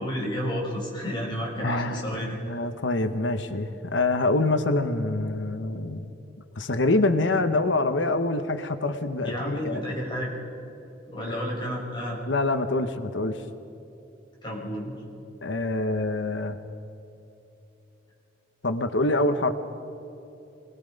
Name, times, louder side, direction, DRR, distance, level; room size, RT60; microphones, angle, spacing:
voice 1, 0.0-2.4 9.2-10.3 11.1-12.2 14.4-15.0, equal, 25° left, -3 dB, 5.2 m, -31 dB
voice 2, 1.6-6.1 6.6-9.8 12.3-13.4 15.4-16.6 18.6-19.5, left 2 dB, 75° left, 9 dB, 1.0 m, -25 dB
26.0 x 20.0 x 5.3 m, 2.9 s
head